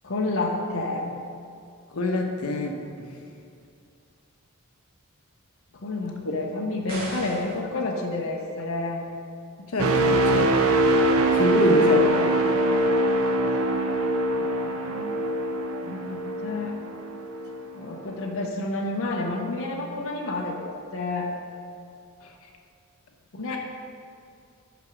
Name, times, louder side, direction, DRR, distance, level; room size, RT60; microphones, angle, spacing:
voice 1, 0.0-1.0 5.7-9.0 12.5-13.6 14.4-15.1 15.8-16.8 17.7-21.3 23.3-23.6, left 2 dB, 65° left, -1 dB, 0.8 m, -30 dB
voice 2, 1.9-3.1 9.7-10.5 11.3-12.1 23.5-23.6, left 2 dB, 85° left, 2 dB, 1.0 m, -25 dB
sound 1, 6.9-7.6, right 1 dB, 45° right, 2.0 m, -36 dB
sound 2, 9.8-17.6 18.1-18.3, right 1 dB, 70° right, 0.7 m, -23 dB
9.3 x 5.8 x 5.0 m, 2.5 s
head